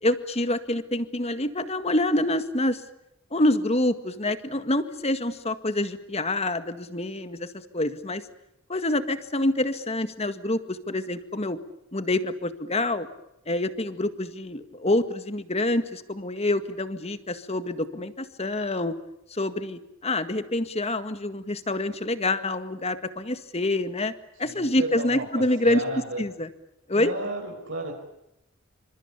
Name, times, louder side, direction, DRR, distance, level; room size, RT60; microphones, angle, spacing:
voice 1, 0.0-2.8 3.3-8.3 8.7-11.6 11.9-13.1 13.5-19.0 19.3-24.1 24.4-25.8 26.2-26.5 26.9-27.1, left 1 dB, 30° left, 10 dB, 1.8 m, -26 dB
voice 2, 24.4-26.2 26.9-28.0, right 2 dB, 60° right, 1 dB, 5.3 m, -33 dB
28.5 x 26.0 x 7.2 m, 0.85 s
head